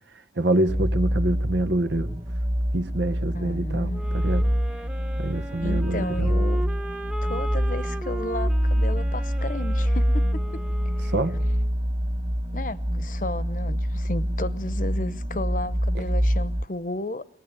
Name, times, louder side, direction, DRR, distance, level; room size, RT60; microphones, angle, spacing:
voice 1, 0.3-2.2 2.7-4.5 5.2-6.3 11.1-11.4 15.9-16.1, right 1 dB, 85° right, 1.3 m, -26 dB
sound 1, 0.7-16.6, equal, 40° right, 1.9 m, -26 dB
voice 2, 3.3-4.0 5.6-6.6 7.2-10.4 11.0-11.1 12.5-17.3, left 1 dB, 45° left, 0.9 m, -33 dB
sound 2, 3.9-11.7, right 1 dB, 5° right, 1.0 m, -38 dB
25.0 x 19.5 x 9.0 m
head